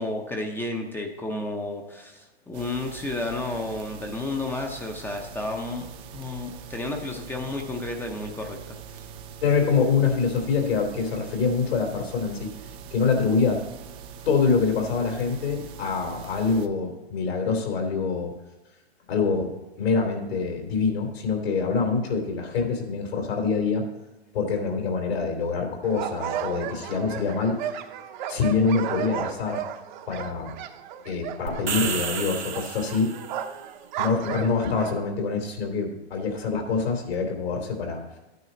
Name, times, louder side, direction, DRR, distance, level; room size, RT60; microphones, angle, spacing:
voice 1, 0.0-5.9 6.1-9.0, left 2 dB, 5° left, 2 dB, 0.8 m, -32 dB
sound 1, 2.5-16.7, right 7 dB, 15° right, 0.4 m, -43 dB
voice 2, 9.4-12.5 12.9-13.6 14.2-18.3 19.1-23.8 24.3-27.6 28.3-29.6 30.1-30.5 31.0-33.1 34.0-38.0, left 5 dB, 70° left, 2 dB, 3.3 m, -25 dB
sound 2, 25.8-34.9, right 9 dB, 45° right, 0.9 m, -34 dB
sound 3, 31.5-33.4, right 7 dB, 85° right, 1.6 m, -31 dB
12.0 x 9.3 x 4.0 m, 1.1 s
hypercardioid pair, 140°, 32 cm